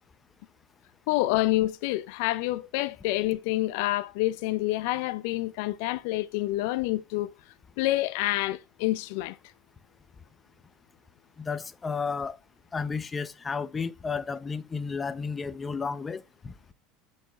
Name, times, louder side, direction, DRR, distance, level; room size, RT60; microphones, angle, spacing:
voice 1, 1.1-7.3 7.8-9.4, left 17 dB, 70° left, 0.4 m, -27 dB
voice 2, 11.4-12.4 12.7-16.7, left 5 dB, 25° left, 0.7 m, -33 dB
6.4 x 5.3 x 4.0 m
hypercardioid pair, 85°, 0 cm